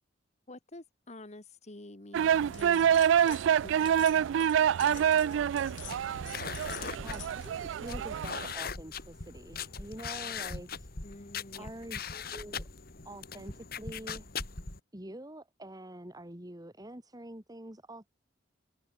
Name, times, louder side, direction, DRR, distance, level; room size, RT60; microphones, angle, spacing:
voice 1, 0.5-3.0 3.6-4.4 11.0-11.7, left 1 dB, 35° left, 1.7 m, -48 dB
sound 1, 2.1-8.5, right 9 dB, 85° right, 0.3 m, -27 dB
sound 2, 2.5-3.4 3.7-7.6, left 15 dB, 85° left, 3.2 m, -49 dB
sound 3, 5.6-14.8, left 5 dB, 55° left, 2.5 m, -40 dB
voice 2, 7.0-10.9 11.6-12.7 13.0-14.3 14.9-18.1, right 1 dB, 20° right, 2.4 m, -46 dB
head